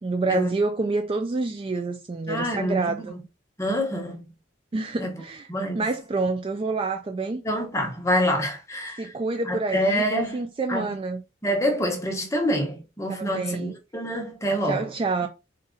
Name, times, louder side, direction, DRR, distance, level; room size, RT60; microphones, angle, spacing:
voice 1, 0.0-3.2 4.7-5.5 5.7-7.4 9.0-11.2 13.1-13.8 14.7-15.3, right 3 dB, 25° right, 0.3 m, -27 dB
voice 2, 2.3-3.0 3.6-4.3 5.0-5.2 5.5-5.8 7.4-9.1 9.5-10.4 10.7-10.9 11.4-14.9, equal, 15° left, 1.0 m, -26 dB
4.0 x 2.5 x 3.7 m
head